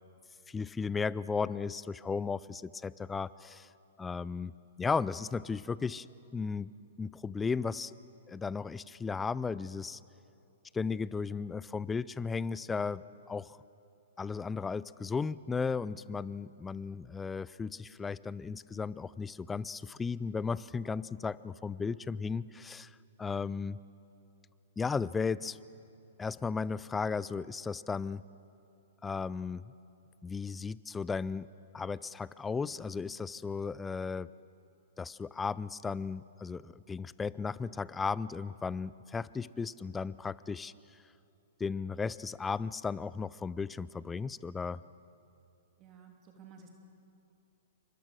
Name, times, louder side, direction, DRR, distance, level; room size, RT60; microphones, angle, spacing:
voice 1, 0.5-3.7 4.0-6.1 6.3-6.7 7.0-7.9 8.3-10.0 10.7-13.6 14.2-23.8 24.8-25.6 26.2-28.2 29.0-29.7 30.2-31.5 31.7-34.3 35.0-40.7 41.6-44.8, left 5 dB, 10° left, 19 dB, 0.5 m, -35 dB
voice 2, 45.8-46.7, right 6 dB, 30° right, 1 dB, 3.2 m, -54 dB
28.5 x 25.0 x 6.4 m, 2.7 s
figure-of-eight pair, 115°, 0 cm